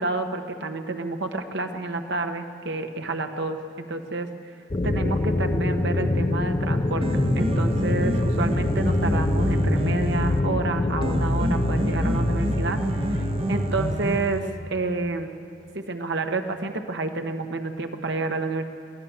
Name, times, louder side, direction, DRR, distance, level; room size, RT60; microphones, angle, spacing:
voice 1, 0.0-3.6 3.9-4.3 4.8-12.8 13.1-15.3 15.7-18.6, right 3 dB, 65° right, 5 dB, 1.3 m, -29 dB
sound 1, 4.7-14.0, left 2 dB, 30° left, 0.6 m, -25 dB
Piano, 6.8-14.8, right 1 dB, 30° right, 0.8 m, -28 dB
22.5 x 16.0 x 7.2 m, 2.4 s
head